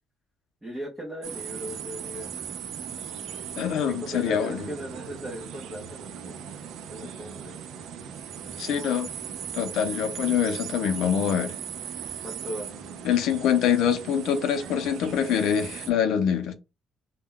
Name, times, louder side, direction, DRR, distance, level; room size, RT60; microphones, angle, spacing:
voice 1, 0.6-2.3 3.9-6.4 6.9-7.6 12.2-12.7, right 1 dB, 10° right, 0.5 m, -37 dB
sound 1, 1.2-15.9, right 8 dB, 75° right, 0.4 m, -38 dB
voice 2, 3.6-4.7 8.6-9.1 9.5-11.5 13.0-16.5, left 8 dB, 70° left, 0.5 m, -25 dB
2.2 x 2.1 x 3.6 m
cardioid pair, 170°, 0 cm